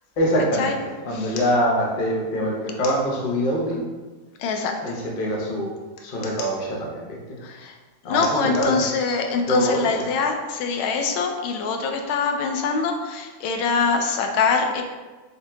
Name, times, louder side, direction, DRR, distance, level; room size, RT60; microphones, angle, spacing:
voice 1, 0.2-3.8 4.8-5.8 6.0-7.2 8.0-8.8 9.5-10.0, equal, 65° left, -2 dB, 0.5 m, -24 dB
voice 2, 4.4-4.7 7.4-7.7 8.1-14.8, left 5 dB, 85° left, 4 dB, 1.4 m, -24 dB
8.0 x 2.9 x 2.2 m, 1.3 s
omnidirectional pair, 2.2 m